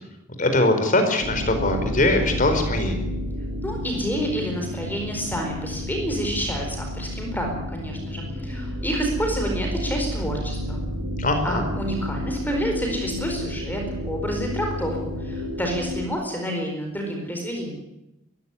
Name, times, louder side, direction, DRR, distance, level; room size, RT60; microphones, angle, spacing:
voice 1, 0.4-3.0 11.2-11.7, left 2 dB, 40° left, 6 dB, 4.5 m, -21 dB
sound 1, 1.2-16.1, equal, 90° right, 3.8 m, -31 dB
voice 2, 3.6-10.8 11.4-17.8, equal, 10° left, 2 dB, 4.5 m, -29 dB
22.0 x 15.0 x 9.7 m, 0.92 s
head